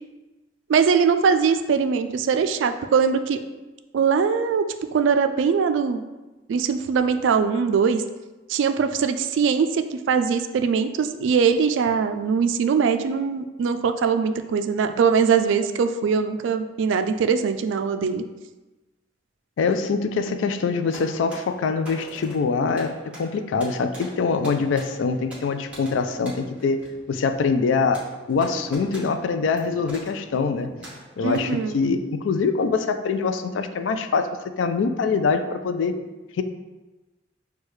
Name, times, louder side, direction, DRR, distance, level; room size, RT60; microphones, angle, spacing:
voice 1, 0.7-3.4 3.9-4.7 4.9-6.0 6.5-8.0 8.5-18.2 31.2-31.7, right 6 dB, 75° right, 9 dB, 0.3 m, -21 dB
voice 2, 19.6-30.7 31.2-34.3 34.6-36.0 36.4-36.5, left 4 dB, 80° left, 9 dB, 0.3 m, -24 dB
sound 1, 20.6-31.7, equal, 5° right, 1.1 m, -43 dB
6.3 x 2.3 x 3.1 m, 1.1 s
head